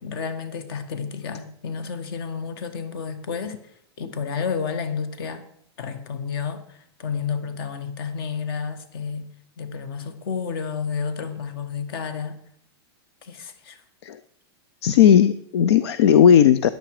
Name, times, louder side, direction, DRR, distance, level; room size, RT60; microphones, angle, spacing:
voice 1, 0.0-3.6 4.0-5.4 5.8-9.3 9.6-12.4 13.2-13.8, left 6 dB, 60° left, 10 dB, 1.8 m, -31 dB
voice 2, 14.8-16.7, left 9 dB, 80° left, 15 dB, 0.6 m, -15 dB
14.0 x 10.0 x 5.0 m, 0.69 s
supercardioid pair, 160°, 14 cm